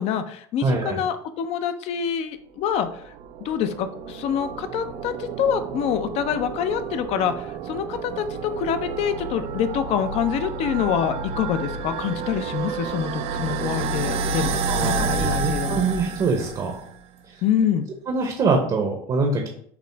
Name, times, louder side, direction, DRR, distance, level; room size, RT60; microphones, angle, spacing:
voice 1, 0.0-3.1 3.4-15.9 17.4-17.8, left 8 dB, 55° left, 9 dB, 0.5 m, -26 dB
voice 2, 0.6-1.0 14.7-16.8 17.3-17.4 18.1-19.5, right 4 dB, 35° right, 2 dB, 0.7 m, -24 dB
sound 1, 2.8-16.9, right 4 dB, 50° right, 0.4 m, -30 dB
5.9 x 2.0 x 3.3 m, 0.64 s
supercardioid pair, 105°, 13 cm